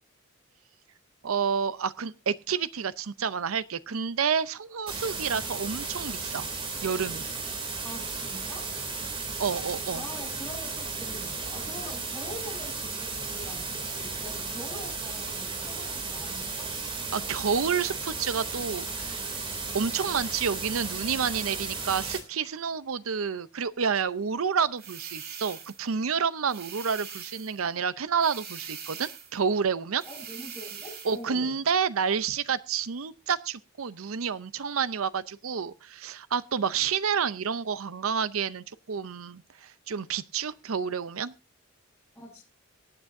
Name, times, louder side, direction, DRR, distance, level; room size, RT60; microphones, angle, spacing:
voice 1, 1.2-6.5 6.8-7.3 9.4-10.0 17.1-19.2 19.7-30.0 31.0-41.3, right 6 dB, 90° right, 16 dB, 0.6 m, -29 dB
sound 1, 4.9-22.2, right 4 dB, 25° right, 2.8 m, -35 dB
voice 2, 7.8-8.7 9.9-16.7 30.1-31.6 42.2-42.4, left 1 dB, 10° left, -7 dB, 5.5 m, -44 dB
sound 2, 24.8-25.9 26.5-27.6 28.2-29.4 30.0-31.2, right 7 dB, 50° right, 2.3 m, -42 dB
23.0 x 8.9 x 2.6 m, 0.27 s
head